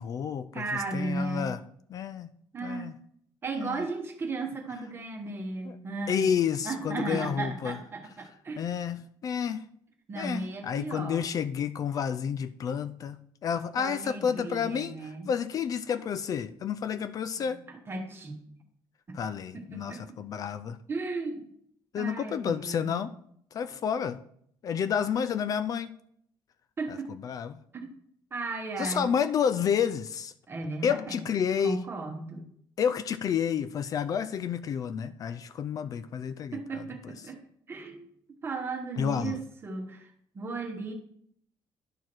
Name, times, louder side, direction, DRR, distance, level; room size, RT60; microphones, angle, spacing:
voice 1, 0.0-1.6 1.9-2.3 2.6-2.9 3.5-3.9 5.6-5.8 6.1-7.8 8.6-9.7 10.1-17.6 19.1-20.8 21.9-23.1 23.5-24.2 24.6-25.9 26.9-27.6 28.8-30.3 30.8-31.8 32.8-37.1 39.0-39.4, left 7 dB, 40° left, 12 dB, 0.3 m, -30 dB
voice 2, 0.5-1.5 2.5-2.9 3.4-6.2 6.6-8.6 10.1-11.2 13.8-15.3 17.4-17.6 17.9-18.5 19.1-19.2 19.5-20.2 20.9-21.5 21.9-23.1 26.8-27.1 27.7-27.9 28.3-29.1 30.5-31.2 31.6-32.4 36.5-37.4 37.7-38.0 38.4-40.1 40.3-40.9, right 3 dB, 25° right, 3 dB, 1.2 m, -35 dB
11.0 x 4.6 x 4.5 m, 0.68 s
cardioid pair, 155°, 9 cm